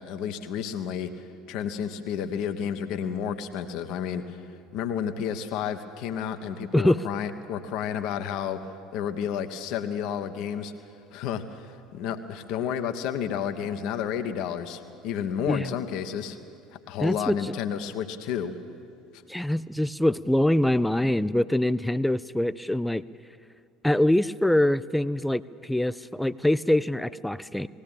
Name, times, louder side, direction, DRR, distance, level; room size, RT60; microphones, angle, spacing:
voice 1, 0.0-4.4 4.7-8.6 8.9-10.7 11.1-16.4 16.9-18.5 19.1-19.2, left 8 dB, 55° left, 8 dB, 1.2 m, -31 dB
voice 2, 17.0-17.5 19.3-23.0 23.8-27.7, left 1 dB, 5° left, 16 dB, 0.5 m, -24 dB
19.5 x 16.5 x 8.9 m, 2.4 s
figure-of-eight pair, 65°, 0 cm